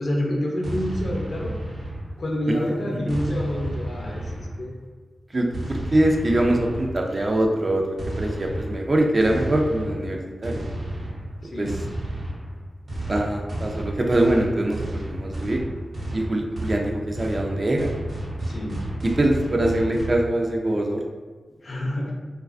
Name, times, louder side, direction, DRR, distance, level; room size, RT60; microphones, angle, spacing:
voice 1, 0.0-1.5 2.2-4.2 4.6-4.7 11.5-11.7 18.4-18.8 21.6-22.1, left 1 dB, 60° left, -1 dB, 0.5 m, -27 dB
sound 1, 0.6-2.4 3.1-4.8 5.5-7.2 8.0-20.2, right 1 dB, 70° right, 0.7 m, -32 dB
voice 2, 2.5-3.1 5.3-7.9 8.2-10.6 11.6-11.8 13.1-15.6 16.1-17.9 19.0-21.0, right 1 dB, 40° right, 1 dB, 0.4 m, -23 dB
2.4 x 2.2 x 2.4 m, 1.4 s
cardioid pair, 60°, 0 cm